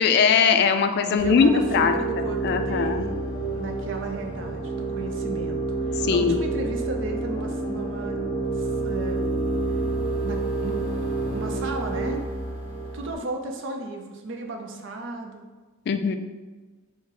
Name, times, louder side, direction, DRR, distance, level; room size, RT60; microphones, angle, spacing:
voice 1, 0.0-1.9 2.4-3.0 6.0-6.4 15.9-16.1, left 6 dB, 55° left, 8 dB, 0.3 m, -20 dB
voice 2, 1.1-3.1 3.5-8.2 8.5-9.3 9.7-9.8 10.2-10.9 11.3-12.2 12.9-15.4, right 2 dB, 65° right, 3 dB, 0.5 m, -35 dB
sound 1, 1.2-13.1, right 3 dB, 35° right, 1.1 m, -28 dB
4.7 x 2.1 x 3.7 m, 1.3 s
head